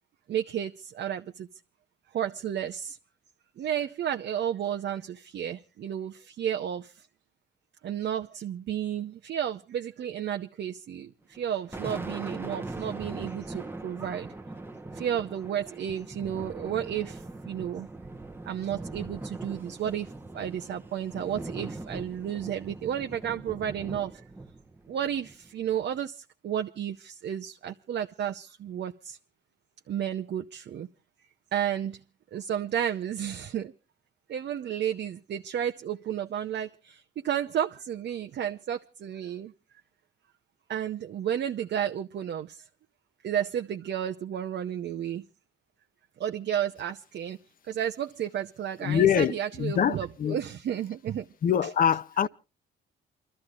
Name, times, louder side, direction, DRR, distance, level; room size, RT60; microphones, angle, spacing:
voice 1, 0.3-1.5 2.1-3.0 3.6-7.1 7.8-14.3 14.9-17.9 18.4-24.2 24.9-29.2 29.9-30.9 31.5-32.0 32.3-33.7 34.3-39.5 40.7-42.6 43.2-45.3 46.2-47.4 47.6-51.3 51.6-51.7 52.2-52.3, right 9 dB, 60° right, 0.8 m, -32 dB
Thunder, 11.3-26.0, right 2 dB, 10° right, 1.0 m, -41 dB
voice 2, 48.8-50.4 51.4-52.3, left 9 dB, 45° left, 0.7 m, -24 dB
29.0 x 13.0 x 2.5 m
cardioid pair, 90°, 20 cm